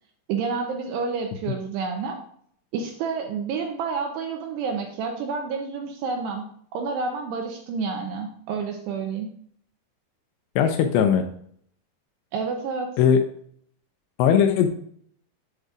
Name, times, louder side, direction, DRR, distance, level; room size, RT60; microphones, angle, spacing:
voice 1, 0.3-2.2 2.7-9.3 12.3-12.9, right 5 dB, 80° right, 3 dB, 2.5 m, -29 dB
voice 2, 10.6-11.2 13.0-13.2 14.2-14.7, left 8 dB, 80° left, 6 dB, 2.6 m, -18 dB
8.0 x 7.6 x 2.4 m, 0.64 s
omnidirectional pair, 5.4 m